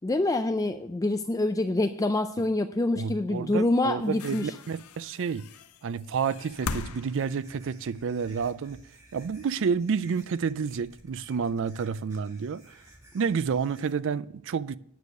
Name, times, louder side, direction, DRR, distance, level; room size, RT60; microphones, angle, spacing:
voice 1, 0.0-4.6, left 2 dB, 15° left, 0.3 m, -26 dB
voice 2, 3.0-5.5 5.8-8.8 9.1-12.6 13.1-14.8, right 6 dB, 60° right, 0.4 m, -29 dB
sound 1, 3.2-3.3 3.9-8.3 9.2-9.3, left 4 dB, 75° left, 0.6 m, -40 dB
sound 2, 6.3-13.9, right 1 dB, 15° right, 2.0 m, -56 dB
9.6 x 6.5 x 6.6 m
head